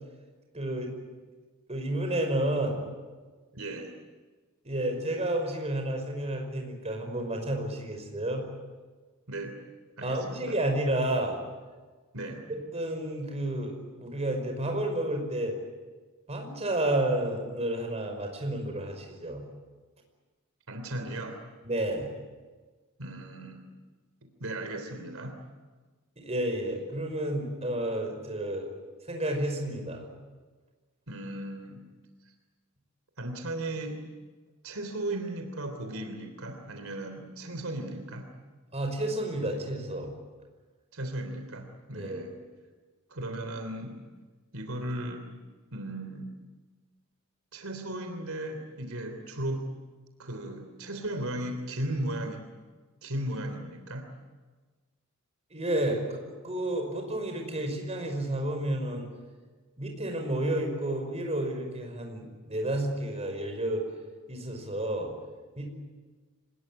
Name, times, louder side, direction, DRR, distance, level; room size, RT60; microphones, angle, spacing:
voice 1, 0.5-0.9 1.7-2.9 4.6-8.5 10.0-11.4 12.5-15.6 16.3-19.4 21.6-22.1 26.2-28.7 29.1-30.1 38.7-40.1 41.9-42.2 55.5-59.1 59.8-63.8 64.3-65.1 65.6-65.7, right 1 dB, 30° right, 3 dB, 5.5 m, -31 dB
voice 2, 3.5-3.9 9.3-9.6 10.0-10.6 12.1-12.4 20.7-21.4 23.0-23.7 24.4-25.4 31.1-31.9 33.2-34.0 34.6-38.3 40.9-42.4 43.1-44.0 44.5-45.2 45.7-46.4 47.5-49.7 50.2-52.5 53.0-54.1, right 1 dB, 80° right, 5 dB, 3.3 m, -36 dB
26.0 x 20.0 x 9.9 m, 1.3 s
head